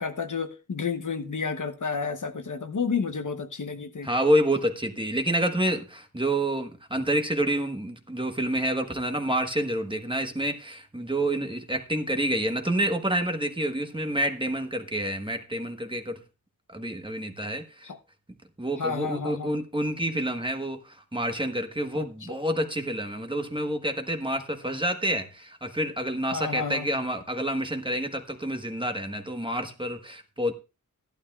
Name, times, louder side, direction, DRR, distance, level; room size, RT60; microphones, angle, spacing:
voice 1, 0.0-4.1 17.8-18.0 18.8-19.5 21.9-22.4 26.3-26.9, left 5 dB, 60° left, 1.0 m, -31 dB
voice 2, 4.0-16.2 16.7-17.9 18.6-30.5, right 1 dB, 15° right, 1.3 m, -28 dB
14.0 x 11.5 x 2.4 m
wide cardioid pair, 75°, 34 cm